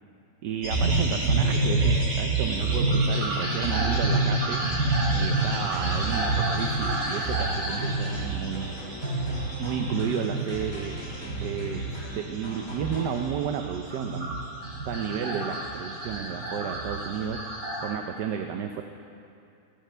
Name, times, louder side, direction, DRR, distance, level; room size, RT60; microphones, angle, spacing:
voice 1, 0.4-4.6 5.1-8.7 9.6-11.0 11.4-11.8 12.1-14.4 14.8-17.4 17.8-18.8, right 8 dB, 80° right, 5 dB, 1.3 m, -32 dB
sound 1, 0.6-17.9, right 2 dB, 65° right, 3.9 m, -27 dB
sound 2, 5.4-13.7, equal, 55° left, 3.2 m, -42 dB
19.0 x 14.0 x 3.4 m, 2.6 s
omnidirectional pair, 1.8 m